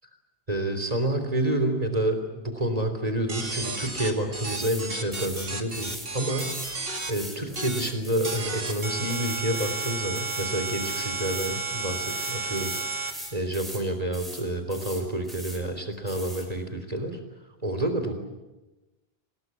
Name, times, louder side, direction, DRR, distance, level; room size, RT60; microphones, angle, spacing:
voice 1, 0.5-6.5 7.1-12.7 13.3-17.2 17.6-18.1, right 1 dB, 35° right, 7 dB, 3.6 m, -28 dB
sound 1, 3.3-7.1 7.6-7.9 8.2-13.1, right 3 dB, 65° right, 2.7 m, -32 dB
sound 2, 4.5-4.8 5.1-6.1 6.4-11.6 11.9-13.8 14.1-14.4 14.7-15.6 16.1-16.5, equal, ahead, 6.2 m, -41 dB
26.0 x 19.5 x 9.6 m, 1.1 s
omnidirectional pair, 1.1 m